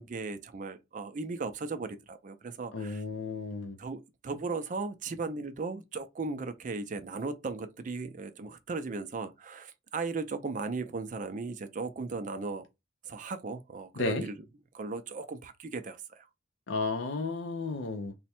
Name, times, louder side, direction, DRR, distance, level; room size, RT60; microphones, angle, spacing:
voice 1, 0.0-3.0 3.8-12.6 13.0-14.4 14.7-16.3, right 4 dB, 40° right, 0.4 m, -37 dB
voice 2, 2.7-3.8 14.0-14.3 16.7-18.1, left 3 dB, 70° left, 0.5 m, -33 dB
3.4 x 2.1 x 4.2 m
head